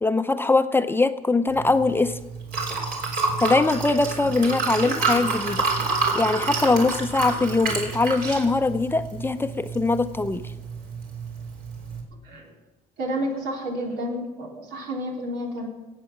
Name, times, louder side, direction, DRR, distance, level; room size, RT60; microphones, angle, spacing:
voice 1, 0.0-2.2 3.4-10.4, left 3 dB, 15° left, 9 dB, 0.6 m, -22 dB
Liquid, 1.5-12.0, right 4 dB, 60° right, 3.5 m, -29 dB
voice 2, 13.0-15.7, equal, 85° right, -1 dB, 3.5 m, -30 dB
18.0 x 8.3 x 5.9 m, 1.1 s
cardioid pair, 110°, 17 cm